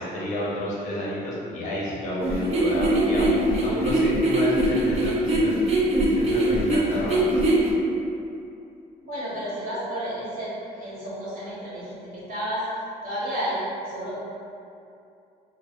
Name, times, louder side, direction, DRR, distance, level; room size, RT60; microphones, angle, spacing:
voice 1, 0.0-5.5 6.1-7.4, left 1 dB, 45° left, -6 dB, 0.6 m, -30 dB
sound 1, 2.2-7.7, right 1 dB, 40° right, 0.5 m, -22 dB
voice 2, 9.0-12.7 13.0-13.6 13.8-14.2, equal, 55° right, -10 dB, 1.0 m, -31 dB
2.2 x 2.1 x 2.8 m, 2.6 s
cardioid pair, 110°, 17 cm